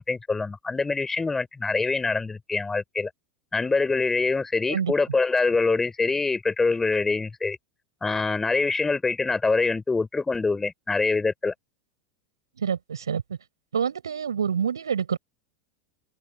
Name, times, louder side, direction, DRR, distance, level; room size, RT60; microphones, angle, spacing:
voice 1, 0.0-3.1 3.5-7.6 8.0-11.5, left 3 dB, 15° left, 4.9 m, -25 dB
voice 2, 12.6-13.4 13.7-15.2, right 7 dB, 75° right, 5.1 m, -27 dB
figure-of-eight pair, 85°, 2 cm